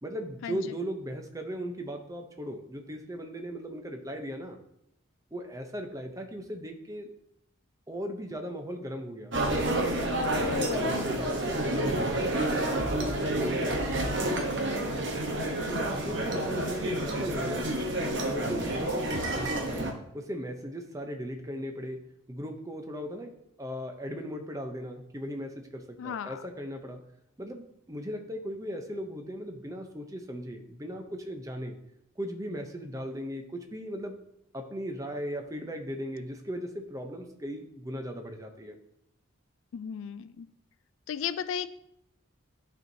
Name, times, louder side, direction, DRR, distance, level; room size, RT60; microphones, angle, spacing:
voice 1, 0.0-4.6 5.3-7.1 7.9-9.3 9.7-14.1 15.5-17.9 18.2-19.9 20.1-22.0 22.3-27.0 27.4-31.8 32.2-34.2 34.5-38.7, equal, 15° right, 4 dB, 0.6 m, -38 dB
sound 1, 9.3-19.9, right 1 dB, 60° right, 1.0 m, -29 dB
voice 2, 10.3-11.0 16.6-16.7 17.1-17.2 26.0-26.4 39.7-40.5 41.1-41.7, left 7 dB, 70° left, 14 dB, 0.3 m, -35 dB
12.0 x 4.4 x 2.7 m, 0.78 s
head